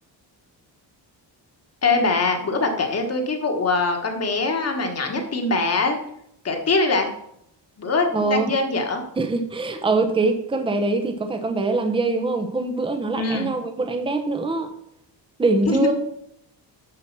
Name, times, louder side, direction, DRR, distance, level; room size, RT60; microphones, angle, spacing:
voice 1, 1.8-6.0 6.4-7.1 7.8-9.0 13.1-13.5 15.7-15.9, left 3 dB, 35° left, 4 dB, 1.5 m, -22 dB
voice 2, 8.1-8.5 9.2-14.7 15.4-15.9, right 3 dB, 10° right, 6 dB, 0.8 m, -23 dB
11.0 x 4.7 x 6.0 m, 0.74 s
wide cardioid pair, 170°, 44 cm